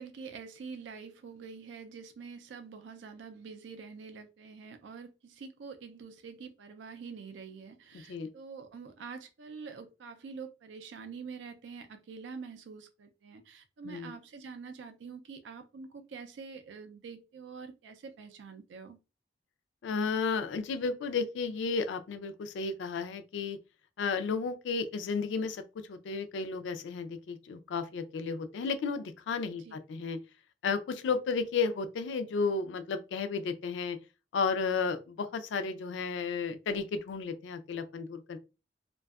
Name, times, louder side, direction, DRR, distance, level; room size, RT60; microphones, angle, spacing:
voice 1, 0.0-19.0 29.6-29.8, right 5 dB, 85° right, 0.4 m, -46 dB
voice 2, 19.8-23.6 24.0-25.6 25.9-30.2 30.6-34.0 34.3-38.4, left 5 dB, 85° left, 0.3 m, -33 dB
2.5 x 2.2 x 2.3 m
head